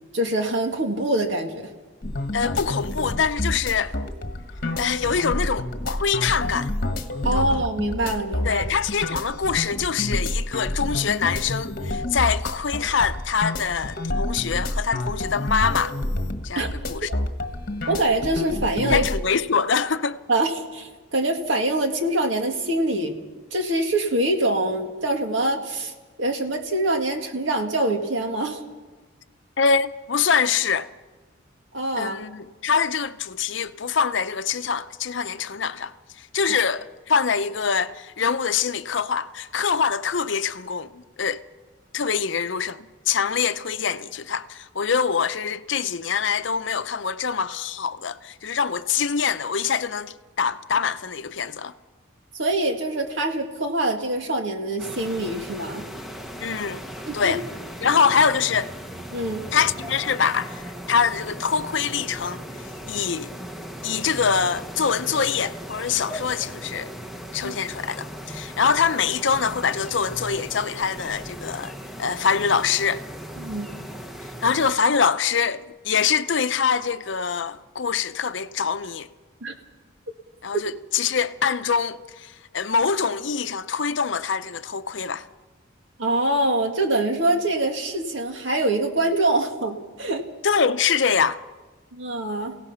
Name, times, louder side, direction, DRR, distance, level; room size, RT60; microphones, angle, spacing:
voice 1, 0.1-1.7 7.2-8.6 16.6-16.7 17.9-19.1 20.3-23.1 23.5-25.9 26.2-28.6 31.7-32.2 52.4-55.8 57.1-57.3 57.9-58.0 59.1-59.5 67.4-67.5 73.4-73.7 79.4-79.5 86.0-90.3 91.9-92.5, right 1 dB, 70° right, 2.1 m, -24 dB
sound 1, 2.0-19.2, left 1 dB, 45° left, 1.4 m, -29 dB
voice 2, 2.3-4.0 4.8-6.7 7.2-7.5 8.4-16.0 16.4-17.1 18.8-20.2 29.6-30.9 32.0-41.4 41.9-51.7 56.4-56.8 57.1-57.4 57.8-58.7 59.5-62.4 62.9-63.3 63.8-66.9 67.3-71.7 72.0-73.0 74.4-79.1 80.4-85.3 90.4-91.4, left 6 dB, 65° left, 0.7 m, -24 dB
sound 2, 54.8-74.7, equal, ahead, 1.1 m, -37 dB
29.0 x 17.0 x 5.6 m
head